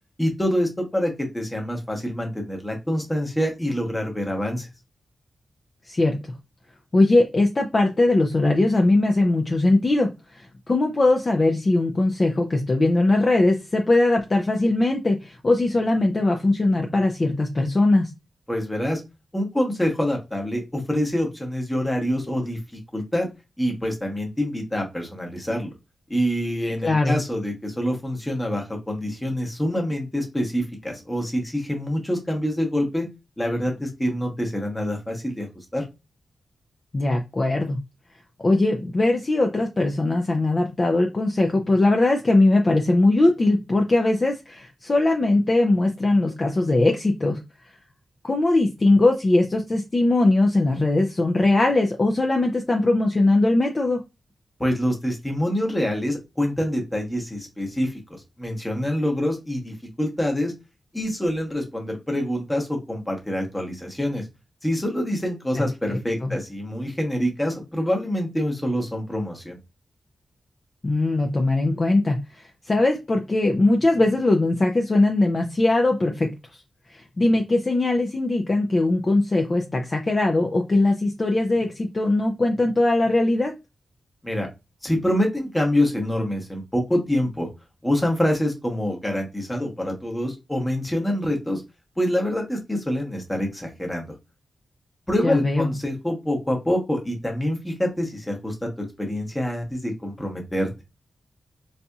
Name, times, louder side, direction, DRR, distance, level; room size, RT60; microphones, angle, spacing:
voice 1, 0.2-4.7 18.5-19.0 19.3-23.3 23.6-25.7 26.1-33.1 33.4-35.5 35.7-35.8 54.6-60.5 60.9-64.2 64.6-69.6 84.2-84.5 84.8-87.5 87.8-91.6 92.0-94.1 95.1-98.7 99.0-100.7, equal, 10° left, 1 dB, 0.9 m, -26 dB
voice 2, 5.9-6.2 6.9-18.1 26.8-27.2 36.9-37.8 38.4-47.4 48.2-54.0 65.9-66.3 70.8-76.3 76.9-83.5 95.2-95.7, left 2 dB, 25° left, 2 dB, 0.4 m, -20 dB
4.1 x 2.7 x 2.3 m, 0.25 s
wide cardioid pair, 170°, 0 cm